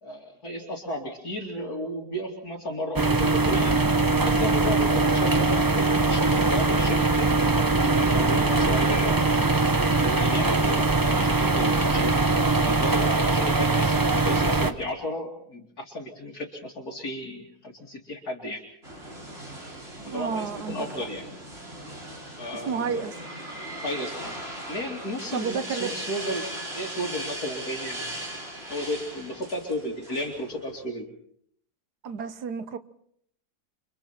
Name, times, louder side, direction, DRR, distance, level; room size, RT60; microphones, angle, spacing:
voice 1, 0.0-3.8 4.2-7.3 7.8-12.1 12.6-18.6 19.5-19.7 20.1-21.3 22.4-23.0 23.7-24.3 24.7-26.4 26.7-28.1 28.7-31.1, equal, 70° left, 3.3 m, -34 dB
sound 1, 3.0-14.7, right 3 dB, 20° right, 0.7 m, -22 dB
sound 2, 18.8-30.8, right 1 dB, 40° right, 5.9 m, -38 dB
voice 2, 20.1-20.9 22.7-23.2 25.3-25.9 32.0-32.8, right 6 dB, 85° right, 1.7 m, -30 dB
30.0 x 25.0 x 4.4 m
omnidirectional pair, 1.7 m